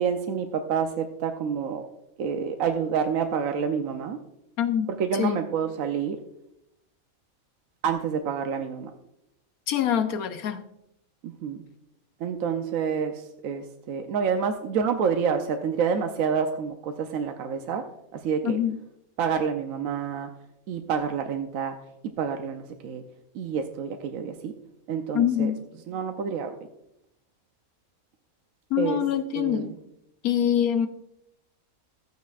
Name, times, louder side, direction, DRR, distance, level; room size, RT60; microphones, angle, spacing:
voice 1, 0.0-1.8 2.2-4.2 5.0-6.2 7.8-8.9 11.2-11.6 12.2-17.8 18.1-18.6 19.2-20.3 20.7-21.8 22.2-23.0 23.3-24.5 24.9-25.5 25.9-26.6 28.8-29.0 29.3-29.7, right 6 dB, 75° right, 6 dB, 1.0 m, -28 dB
voice 2, 4.6-5.4 9.7-10.6 18.4-18.8 25.1-25.6 28.7-29.7 30.2-30.9, left 9 dB, 85° left, 10 dB, 1.2 m, -25 dB
13.5 x 9.3 x 2.4 m, 0.80 s
omnidirectional pair, 1.5 m